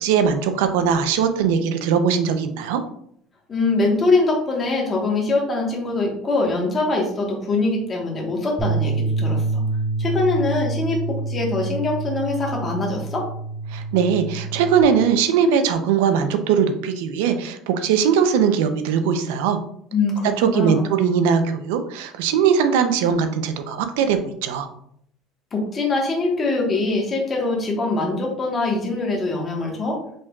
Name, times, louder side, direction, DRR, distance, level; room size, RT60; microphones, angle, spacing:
voice 1, 0.0-2.8 13.7-19.6 20.4-24.7, right 7 dB, 90° right, 8 dB, 0.5 m, -20 dB
voice 2, 3.5-9.6 10.0-13.2 19.9-20.9 25.5-30.0, left 3 dB, 25° left, -1 dB, 1.2 m, -23 dB
sound 1, 8.6-14.8, right 3 dB, 5° right, 0.9 m, -26 dB
5.1 x 3.7 x 2.3 m, 0.68 s
cardioid pair, 145°, 0 cm